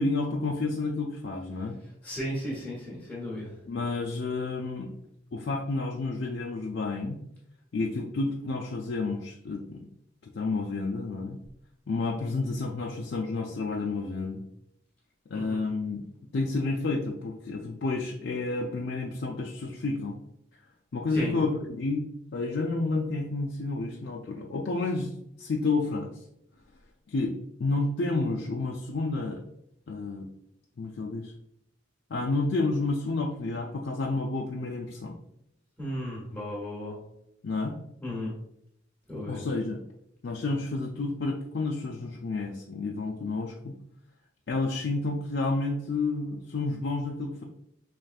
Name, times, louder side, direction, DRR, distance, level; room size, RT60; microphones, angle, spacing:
voice 1, 0.0-1.7 3.7-4.9 5.3-7.2 7.7-9.9 10.3-11.4 11.9-14.4 15.3-16.0 16.3-20.2 20.9-22.0 22.3-25.1 25.4-26.1 27.1-27.3 27.6-29.4 29.9-30.3 30.8-31.3 32.1-35.2 37.4-37.8 39.3-39.8 40.2-43.7 44.5-47.4, left 3 dB, 60° left, -1 dB, 0.4 m, -30 dB
voice 2, 2.0-3.5 15.3-15.6 21.1-21.3 35.8-37.0 38.0-38.4 39.1-39.4, equal, 10° left, -7 dB, 1.3 m, -35 dB
5.0 x 3.2 x 2.3 m, 0.77 s
head